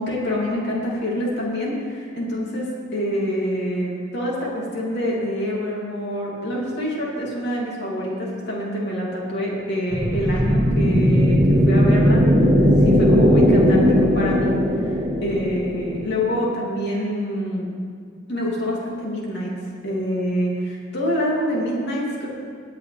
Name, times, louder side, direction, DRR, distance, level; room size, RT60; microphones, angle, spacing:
voice 1, 0.0-12.2 12.6-14.5 14.8-17.7 18.3-19.5 19.8-22.3, equal, 55° left, -4 dB, 2.6 m, -26 dB
sound 1, 9.9-16.4, equal, 15° right, 1.0 m, -17 dB
18.0 x 8.5 x 3.3 m, 2.1 s
head